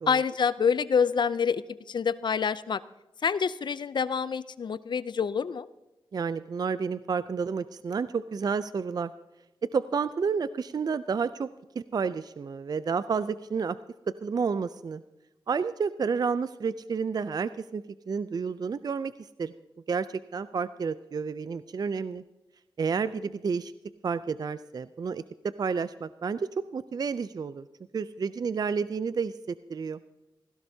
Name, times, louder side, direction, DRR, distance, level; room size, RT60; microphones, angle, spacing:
voice 1, 0.1-2.8 3.2-5.7, left 6 dB, 60° left, 17 dB, 0.4 m, -27 dB
voice 2, 6.1-9.1 9.7-11.5 11.8-13.8 14.2-15.0 15.5-19.1 19.4-19.5 19.9-22.2 22.8-23.7 24.0-27.7 27.9-30.0, right 5 dB, 50° right, 15 dB, 0.4 m, -30 dB
16.5 x 16.0 x 2.7 m, 1.0 s
cardioid pair, 70°, 9 cm